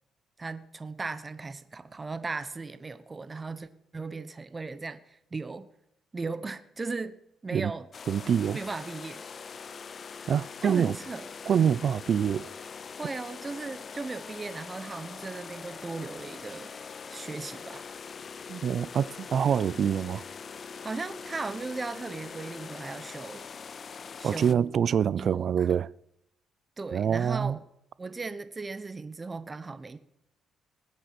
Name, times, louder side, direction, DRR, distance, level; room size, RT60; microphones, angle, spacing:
voice 1, 0.4-5.7 6.1-7.2 7.4-7.9 8.5-9.3 10.6-11.3 13.0-16.7 17.1-17.8 20.8-23.4 24.2-24.7 25.2-25.8 26.8-27.6 28.0-30.0, right 3 dB, 25° right, 1.1 m, -37 dB
sound 1, 7.9-24.5, left 6 dB, 45° left, 0.5 m, -43 dB
voice 2, 8.1-8.6 10.3-11.0 11.5-12.5 18.5-20.2 24.2-25.9 26.9-27.6, right 8 dB, 55° right, 0.4 m, -25 dB
20.0 x 8.0 x 6.0 m
cardioid pair, 90°, 0 cm